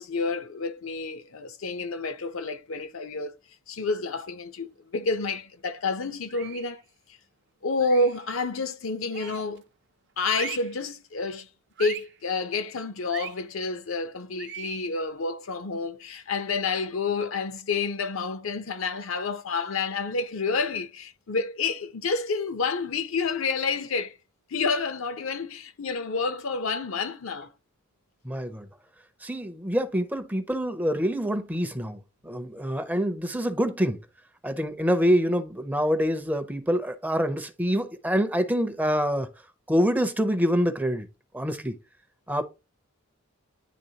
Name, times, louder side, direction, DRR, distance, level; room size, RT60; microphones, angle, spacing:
voice 1, 0.0-3.4 3.7-6.8 7.6-9.6 10.2-11.5 11.8-24.1 24.5-27.5, left 4 dB, 75° left, 0.7 m, -29 dB
sound 1, 6.3-6.8 7.8-8.2 9.1-9.6 10.3-10.8 11.8-12.2 13.1-13.4 14.4-14.9, right 10 dB, 55° right, 0.5 m, -39 dB
voice 2, 28.2-28.7 29.2-34.0 34.4-39.3 39.7-41.1 41.3-41.8 42.3-42.4, equal, 10° right, 0.5 m, -26 dB
10.0 x 3.5 x 2.8 m
head